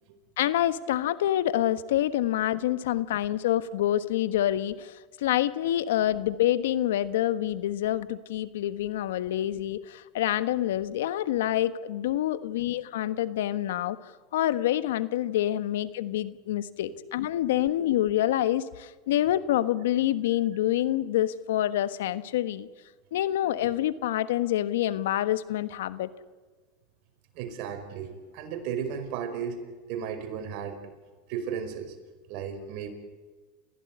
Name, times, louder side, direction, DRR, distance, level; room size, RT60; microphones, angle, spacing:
voice 1, 0.4-14.0 14.3-22.7 23.1-26.1, left 13 dB, 80° left, 13 dB, 1.3 m, -27 dB
voice 2, 27.3-29.6 29.9-30.8 31.3-32.0 32.3-32.9, right 7 dB, 60° right, 6 dB, 5.2 m, -34 dB
29.5 x 16.0 x 9.7 m, 1.4 s
supercardioid pair, 110°, 0 cm